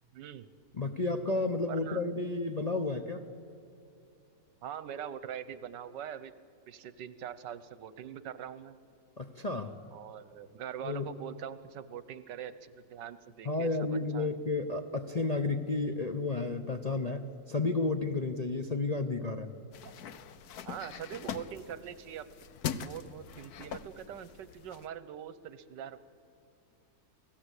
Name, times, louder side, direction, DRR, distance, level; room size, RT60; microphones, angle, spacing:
voice 1, 0.1-0.5 1.7-2.0 4.6-6.3 6.7-8.8 9.9-14.3 20.6-22.3 22.6-26.0, right 9 dB, 80° right, 15 dB, 1.5 m, -43 dB
voice 2, 0.8-3.3 9.2-9.7 10.8-11.1 13.4-19.5, left 3 dB, 35° left, 5 dB, 0.7 m, -32 dB
sound 1, 19.7-24.9, left 8 dB, 65° left, 1.3 m, -42 dB
28.5 x 18.0 x 8.3 m, 2.6 s
omnidirectional pair, 1.9 m